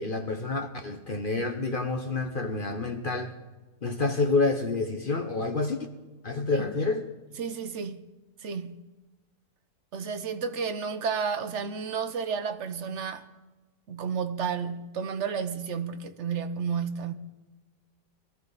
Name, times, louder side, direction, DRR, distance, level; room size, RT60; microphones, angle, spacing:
voice 1, 0.0-3.3 3.8-5.8 6.2-7.1, left 3 dB, 40° left, 0.9 m, -28 dB
voice 2, 7.4-8.0 8.4-8.8 9.9-13.3 13.9-17.1, right 6 dB, 50° right, 1.0 m, -32 dB
22.0 x 14.0 x 4.0 m
omnidirectional pair, 1.8 m